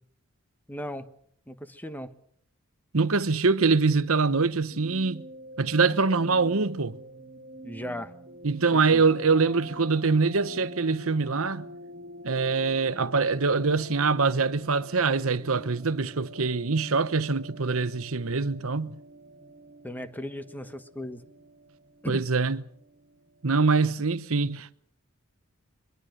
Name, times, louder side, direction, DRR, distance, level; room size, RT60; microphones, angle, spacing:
voice 1, 0.7-1.1 1.5-2.1 7.6-8.1 8.7-9.0 19.8-21.2 22.0-22.2, left 1 dB, 10° left, 1.3 m, -37 dB
voice 2, 2.9-5.2 5.6-7.0 8.4-11.7 12.2-18.9 22.1-22.6 23.4-24.7, right 4 dB, 70° right, 1.0 m, -24 dB
sound 1, 4.3-23.8, right 1 dB, 35° right, 2.0 m, -46 dB
23.5 x 22.5 x 6.6 m
head